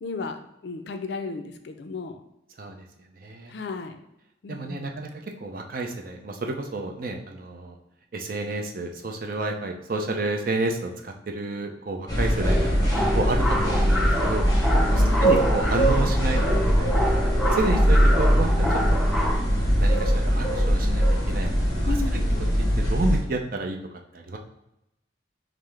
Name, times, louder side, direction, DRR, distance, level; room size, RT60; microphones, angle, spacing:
voice 1, 0.0-2.2 3.5-4.0 4.4-4.9 14.9-15.3 21.9-22.5, left 3 dB, 60° left, 7 dB, 0.4 m, -34 dB
voice 2, 3.2-3.5 4.5-5.1 5.4-7.8 8.1-17.2 17.5-19.0 19.8-21.9 22.3-22.5 22.8-23.8 24.1-24.4, right 2 dB, 50° right, 2 dB, 0.5 m, -30 dB
sound 1, 12.1-23.2, equal, 20° left, 1.0 m, -21 dB
sound 2, 12.4-19.4, equal, ahead, 0.5 m, -28 dB
5.5 x 2.0 x 3.2 m, 0.85 s
head